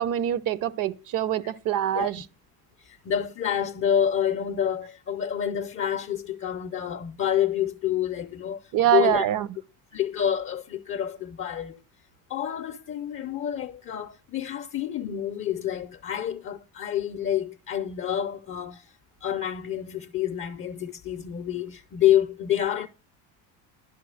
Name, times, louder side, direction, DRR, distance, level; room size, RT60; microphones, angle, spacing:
voice 1, 0.0-2.2 8.7-9.5, right 11 dB, 55° right, 0.7 m, -24 dB
voice 2, 2.8-9.3 9.9-11.8 12.3-18.9 19.2-22.9, left 10 dB, 35° left, 0.6 m, -28 dB
12.0 x 5.9 x 6.3 m
cardioid pair, 145°, 39 cm